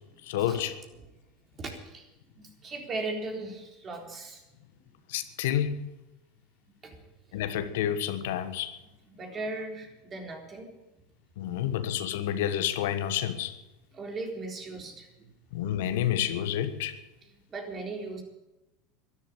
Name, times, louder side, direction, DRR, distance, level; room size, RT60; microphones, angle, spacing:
voice 1, 0.2-0.7 5.1-5.9 7.3-8.8 11.4-13.6 15.5-17.0, left 10 dB, 80° left, 10 dB, 1.4 m, -29 dB
voice 2, 1.6-2.1 2.4-4.4 6.8-7.0 9.1-10.7 11.4-11.5 13.9-15.3 17.5-18.2, right 3 dB, 30° right, 3 dB, 3.9 m, -38 dB
12.5 x 11.5 x 8.8 m, 1.0 s
supercardioid pair, 110°, 0 cm